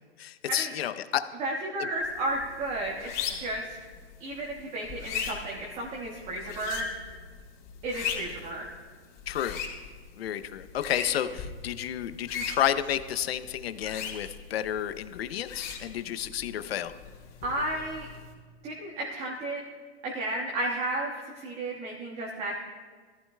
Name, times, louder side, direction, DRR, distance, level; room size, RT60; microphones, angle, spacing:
voice 1, 0.2-1.2 9.3-9.6 10.2-16.9, left 10 dB, 65° left, 11 dB, 0.8 m, -31 dB
voice 2, 1.4-3.8 4.2-6.9 7.8-8.7 17.4-18.1 18.6-19.6 20.0-22.6, right 1 dB, 20° right, -3 dB, 1.4 m, -33 dB
sound 1, 2.0-18.3, left 7 dB, 30° left, 3.5 m, -40 dB
22.0 x 15.0 x 2.2 m, 1.5 s
hypercardioid pair, 145°, 33 cm